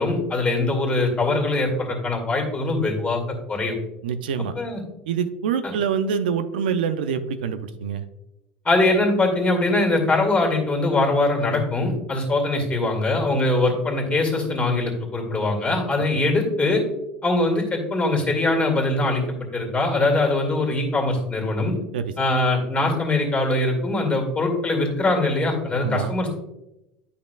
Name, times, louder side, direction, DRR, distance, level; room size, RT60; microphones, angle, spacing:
voice 1, 0.0-3.2 3.5-3.8 4.6-4.8 5.6-5.7 8.6-16.8 17.2-21.7 22.2-26.4, left 2 dB, 25° left, 1 dB, 2.2 m, -22 dB
voice 2, 4.0-4.5 5.1-8.1 16.1-16.2 21.9-22.1 25.8-26.1, right 7 dB, 85° right, 10 dB, 0.5 m, -25 dB
9.8 x 5.5 x 2.3 m, 0.90 s
hypercardioid pair, 85°, 5 cm